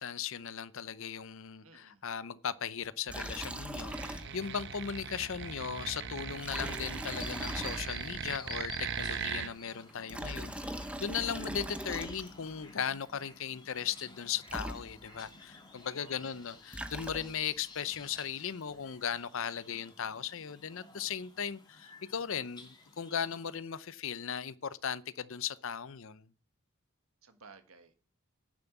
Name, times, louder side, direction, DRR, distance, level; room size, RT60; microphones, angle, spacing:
voice 1, 0.0-26.2, left 7 dB, 65° left, 0.6 m, -37 dB
voice 2, 1.6-2.0 16.0-16.5 27.2-27.9, right 4 dB, 75° right, 1.7 m, -56 dB
Liquid, 3.1-4.6 4.9-5.0 6.4-8.3 9.9-12.6 14.2-14.3 14.5-15.3 16.5-17.6, right 1 dB, 5° right, 0.8 m, -40 dB
sound 1, 3.8-9.5, right 7 dB, 55° right, 0.9 m, -39 dB
sound 2, 7.2-23.5, left 3 dB, 20° left, 2.4 m, -52 dB
9.9 x 7.2 x 8.0 m
head